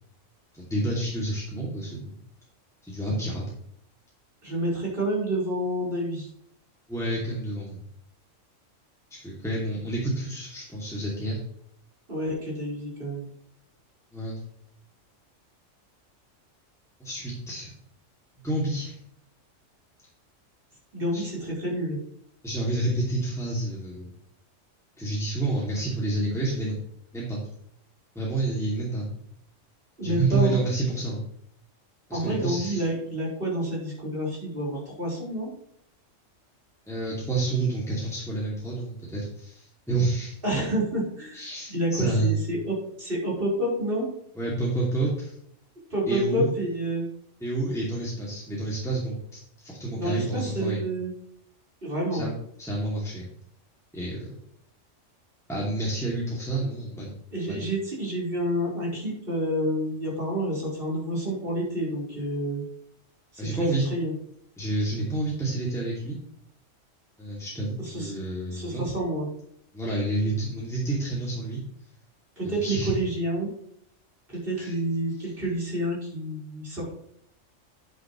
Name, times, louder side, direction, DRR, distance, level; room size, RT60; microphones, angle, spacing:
voice 1, 0.5-2.1 2.8-3.4 6.9-7.8 9.1-11.4 14.1-14.4 17.0-17.7 18.4-19.0 21.1-21.2 22.4-24.1 25.0-26.8 27.1-27.4 28.1-29.2 30.0-31.2 32.1-32.8 36.9-40.4 41.3-42.3 44.4-45.4 46.1-46.5 47.4-50.8 52.1-52.3 52.6-53.3 53.9-54.2 55.5-57.2 57.5-57.6 63.4-63.9 64.6-66.2 67.2-68.9 69.7-71.6 72.4-72.9 74.6-74.8, right 2 dB, ahead, -6 dB, 2.5 m, -29 dB
voice 2, 4.4-6.3 12.1-13.3 20.9-22.0 30.0-30.6 32.1-35.5 40.4-41.4 41.7-44.1 45.9-47.1 49.9-51.1 51.8-52.3 57.3-62.6 63.3-64.1 67.8-68.2 68.5-69.3 72.4-73.5 74.3-76.9, right 1 dB, 45° right, -5 dB, 4.8 m, -29 dB
9.9 x 9.3 x 3.2 m, 0.70 s
omnidirectional pair, 1.3 m